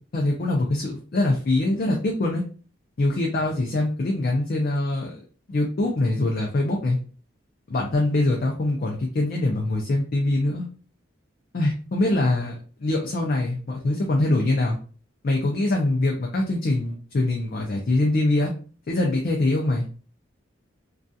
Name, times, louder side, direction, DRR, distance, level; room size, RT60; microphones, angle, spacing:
voice 1, 0.1-2.4 3.0-5.1 5.5-7.0 7.7-10.7 11.5-14.8 15.2-18.5 18.9-19.9, left 2 dB, 50° left, -1 dB, 0.4 m, -23 dB
2.3 x 2.3 x 2.6 m, 0.39 s
head